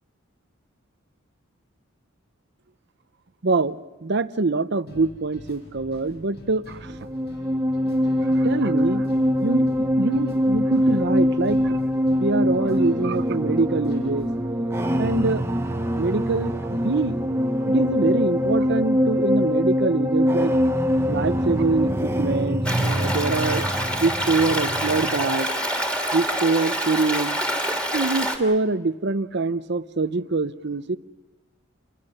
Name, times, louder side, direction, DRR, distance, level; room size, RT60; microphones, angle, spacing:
voice 1, 3.4-7.0 8.3-9.1 9.4-11.8 12.2-14.3 15.0-15.4 16.0-17.2 17.7-20.6 21.1-23.7 24.0-25.5 26.1-27.4 27.9-31.0, right 3 dB, 55° right, 13 dB, 0.7 m, -24 dB
sound 1, 4.9-14.4, equal, 50° left, 7.4 m, -46 dB
sound 2, 6.9-25.3, equal, 10° right, 0.9 m, -23 dB
Stream, 22.6-28.4, equal, 5° left, 3.0 m, -26 dB
28.5 x 23.0 x 6.6 m, 1.1 s
head